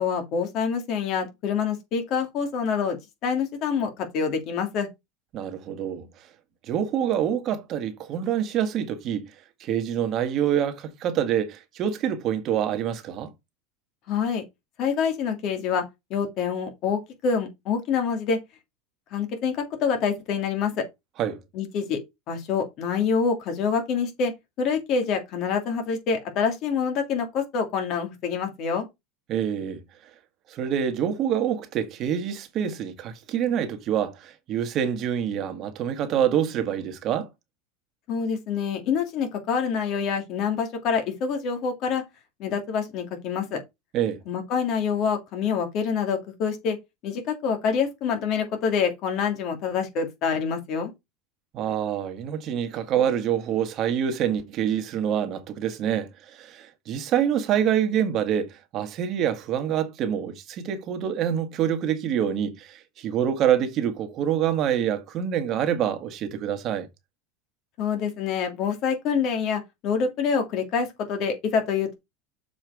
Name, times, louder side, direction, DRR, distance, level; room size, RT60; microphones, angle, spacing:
voice 1, 0.0-3.0 3.2-4.9 14.1-14.4 14.8-18.4 19.1-20.8 21.5-22.0 22.3-28.8 38.1-42.0 42.4-43.6 44.3-46.8 47.0-50.9 67.8-71.9, left 6 dB, 45° left, 3.0 m, -26 dB
voice 2, 5.3-6.1 6.7-9.3 9.6-13.3 21.2-21.4 29.3-29.8 30.5-37.3 43.9-44.2 51.5-66.9, right 9 dB, 40° right, 1.7 m, -26 dB
7.0 x 5.0 x 4.9 m
supercardioid pair, 140°, 0 cm